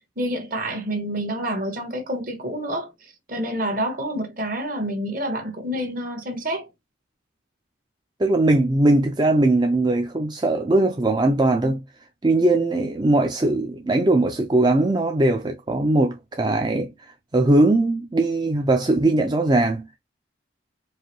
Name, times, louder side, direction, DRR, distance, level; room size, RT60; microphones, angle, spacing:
voice 1, 0.2-6.7, equal, 45° right, 1.3 m, -28 dB
voice 2, 8.2-11.8 12.2-19.9, right 2 dB, 25° right, 0.4 m, -20 dB
4.7 x 2.6 x 2.9 m
head